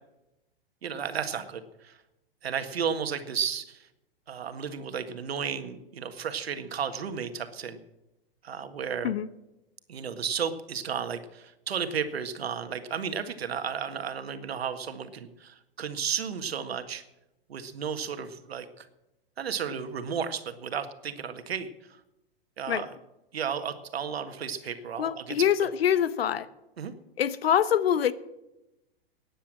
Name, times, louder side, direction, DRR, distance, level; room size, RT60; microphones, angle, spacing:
voice 1, 0.8-1.9 2.4-3.8 4.3-7.8 8.4-9.1 9.9-17.0 17.5-18.9 19.4-21.7 22.6-22.9 23.3-25.4 26.8-26.9, right 7 dB, 80° right, 1.7 m, -33 dB
voice 2, 25.0-26.5 27.2-28.1, left 9 dB, 75° left, 1.0 m, -25 dB
16.0 x 10.0 x 7.5 m
hypercardioid pair, 115°, 30 cm